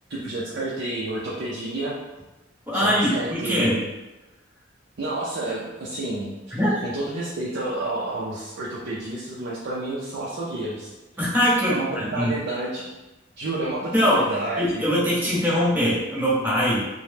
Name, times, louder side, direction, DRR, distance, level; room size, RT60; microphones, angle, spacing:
voice 1, 0.1-2.0 2.7-3.8 5.0-10.9 11.7-12.9 13.4-14.8, right 2 dB, 55° right, -6 dB, 0.4 m, -30 dB
voice 2, 2.7-3.8 6.5-6.7 11.2-12.3 13.9-14.3 14.6-16.8, equal, 10° right, -8 dB, 0.8 m, -22 dB
2.8 x 2.0 x 3.3 m, 1.1 s
head